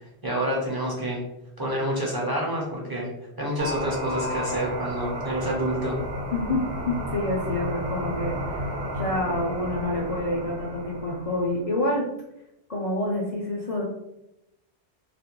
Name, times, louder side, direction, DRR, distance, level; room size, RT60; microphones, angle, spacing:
voice 1, 0.2-1.2 1.6-3.1 3.4-6.0, equal, 30° right, -3 dB, 0.4 m, -28 dB
sound 1, 3.6-11.6, equal, 85° right, 0.9 m, -32 dB
voice 2, 6.3-8.6 8.9-12.1 12.7-13.8, left 1 dB, 60° left, -4 dB, 0.3 m, -27 dB
2.4 x 2.1 x 2.8 m, 0.87 s
omnidirectional pair, 1.1 m